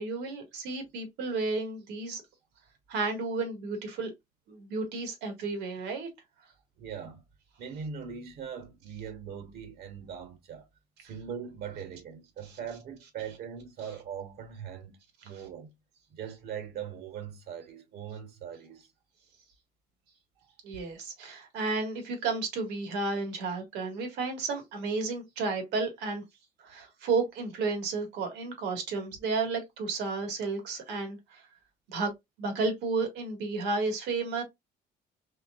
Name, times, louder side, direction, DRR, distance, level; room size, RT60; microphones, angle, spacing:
voice 1, 0.0-2.2 2.9-4.1 4.5-6.1 20.6-26.2 26.6-31.4 31.9-32.1 32.4-34.4, right 3 dB, 85° right, 1.9 m, -32 dB
voice 2, 6.8-7.2 7.6-10.7 11.0-15.7 16.1-18.9 20.4-20.5, right 7 dB, 65° right, 1.1 m, -41 dB
4.3 x 3.5 x 2.4 m
cardioid pair, 110°, 17 cm